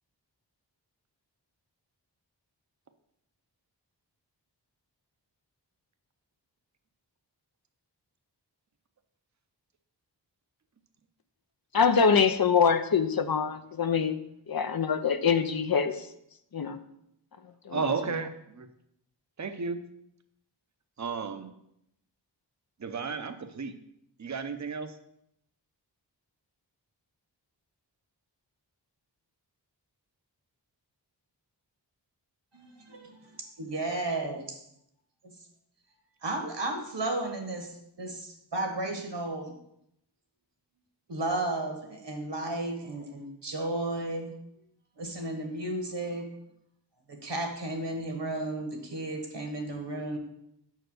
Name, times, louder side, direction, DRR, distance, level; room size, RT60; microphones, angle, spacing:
voice 1, 11.7-14.2 14.5-15.9 16.5-16.8 17.7-17.8, left 6 dB, 55° left, 10 dB, 0.6 m, -24 dB
voice 2, 17.7-18.7 19.4-19.9 21.0-21.5 22.8-23.7 24.2-24.9, right 5 dB, 40° right, 8 dB, 0.7 m, -33 dB
voice 3, 32.5-34.6 36.2-39.5 41.1-44.3 45.0-46.3 47.1-50.2, right 2 dB, 70° right, 3 dB, 1.6 m, -33 dB
5.5 x 4.6 x 6.4 m, 0.77 s
wide cardioid pair, 45°, 43 cm